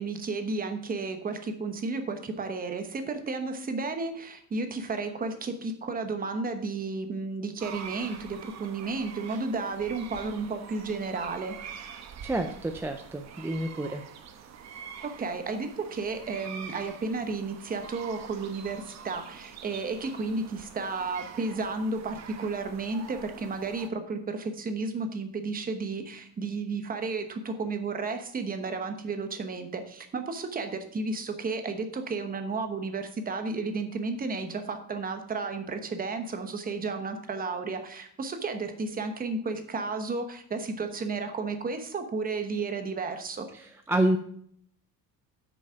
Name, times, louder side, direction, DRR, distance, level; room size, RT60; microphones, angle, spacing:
voice 1, 0.0-11.5 15.0-43.5, right 3 dB, 25° right, 7 dB, 1.0 m, -33 dB
sound 1, 7.6-23.9, right 7 dB, 45° right, 1.0 m, -45 dB
voice 2, 12.2-14.0 43.5-44.2, right 1 dB, 5° right, 5 dB, 0.3 m, -28 dB
8.7 x 6.3 x 5.7 m, 0.65 s
cardioid pair, 175°, 36 cm